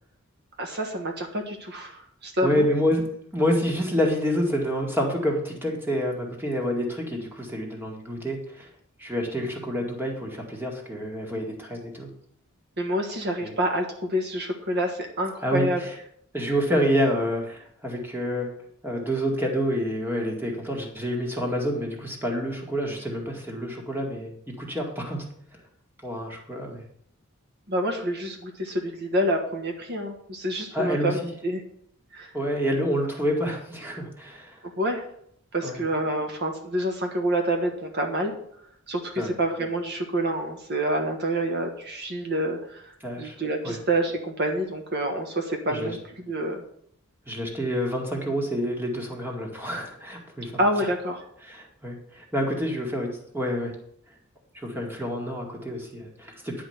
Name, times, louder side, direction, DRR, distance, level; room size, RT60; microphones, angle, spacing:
voice 1, 0.6-2.7 12.8-15.8 27.7-31.6 32.1-32.3 34.8-35.1 35.5-38.3 38.9-42.9 43.2-46.0 46.2-46.6 50.6-51.2, right 1 dB, 50° right, 3 dB, 1.4 m, -27 dB
voice 2, 2.4-3.0 3.3-8.7 9.0-12.1 13.4-13.5 15.4-15.9 16.3-18.5 18.8-25.3 26.0-26.8 30.7-31.1 32.3-34.6 35.6-35.8 39.2-39.3 43.0-43.4 43.6-43.8 45.7-46.0 47.3-50.6 51.4-53.1 53.3-53.7 54.5-56.6, equal, 10° right, 0 dB, 2.0 m, -28 dB
10.5 x 5.1 x 7.9 m, 0.67 s
head